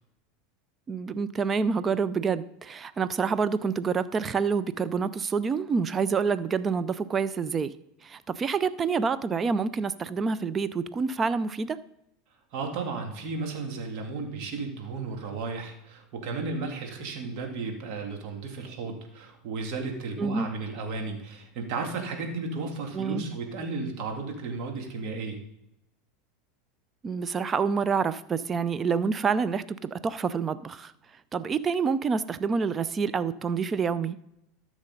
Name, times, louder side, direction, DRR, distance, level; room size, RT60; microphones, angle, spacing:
voice 1, 0.9-7.7 8.0-11.8 20.2-20.5 22.9-23.2 27.0-30.9 31.3-34.2, right 5 dB, 30° right, 15 dB, 0.6 m, -27 dB
voice 2, 12.5-25.4, right 4 dB, 55° right, 3 dB, 2.3 m, -34 dB
13.5 x 6.4 x 3.9 m, 0.81 s
hypercardioid pair, 85°, 0 cm